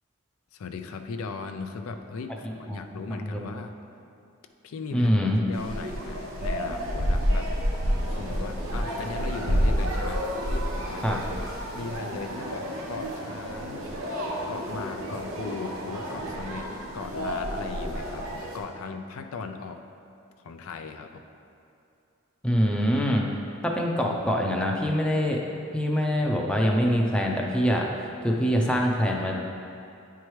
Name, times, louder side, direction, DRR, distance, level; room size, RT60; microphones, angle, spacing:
voice 1, 0.5-3.7 4.6-5.1 5.5-7.5 8.1-11.1 11.7-13.9 14.5-16.7 16.9-19.8 20.4-21.2, left 4 dB, 85° left, 6 dB, 0.4 m, -38 dB
voice 2, 3.1-3.4 4.9-5.4 11.0-11.2 22.4-23.3 23.6-25.4 25.7-27.9 28.2-29.3, equal, 5° left, -1 dB, 0.5 m, -24 dB
sound 1, 5.5-18.6, equal, 90° right, 1.0 m, -30 dB
9.4 x 4.7 x 3.1 m, 2.6 s
head